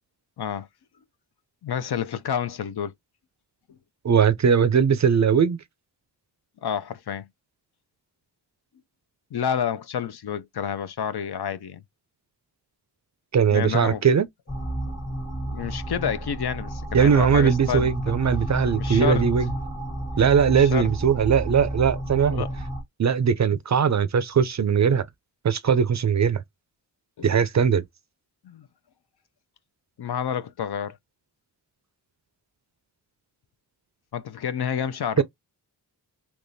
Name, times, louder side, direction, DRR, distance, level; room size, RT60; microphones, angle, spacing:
voice 1, 0.4-0.7 1.6-2.9 6.6-7.3 9.3-11.8 13.5-14.0 15.4-18.1 18.8-19.3 20.6-20.9 22.3-22.5 27.2-27.3 28.4-28.7 30.0-31.0 34.1-35.2, left 8 dB, 65° left, 0.6 m, -29 dB
voice 2, 4.0-5.6 13.3-14.3 16.9-19.5 20.2-22.4 23.0-25.0 25.4-26.4 27.2-27.8 35.2-35.3, right 7 dB, 45° right, 0.4 m, -20 dB
sound 1, 14.5-22.8, right 1 dB, 25° left, 1.2 m, -31 dB
3.5 x 3.0 x 2.6 m
wide cardioid pair, 75°, 42 cm